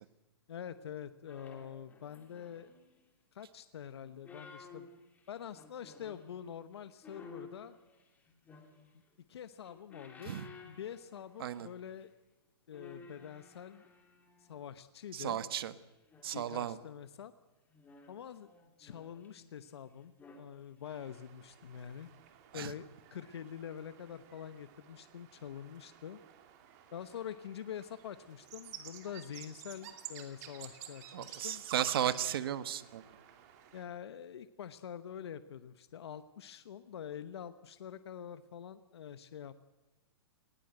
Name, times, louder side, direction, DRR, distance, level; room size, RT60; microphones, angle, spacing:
voice 1, 0.5-2.7 3.3-4.9 5.3-7.8 9.3-10.4 10.6-12.1 12.7-13.9 14.4-15.4 16.3-17.3 18.1-18.5 18.8-22.1 22.5-26.2 26.9-31.6 33.7-39.5, left 9 dB, 70° left, 12 dB, 1.0 m, -46 dB
sound 1, 1.3-3.0 4.0-6.3 7.0-9.1 9.5-11.6 11.9-12.1 12.7-14.8 15.6-16.9 17.7-19.7 20.0-20.5 21.0-21.1, left 4 dB, 10° left, 2.6 m, -55 dB
voice 2, 15.1-15.7 16.2-16.8 22.5-22.7 31.1-33.0, right 10 dB, 60° right, 13 dB, 1.3 m, -35 dB
sound 2, 20.8-33.8, right 10 dB, 40° right, 2.6 m, -52 dB
19.5 x 17.5 x 7.9 m, 1.1 s
hypercardioid pair, 155°, 14 cm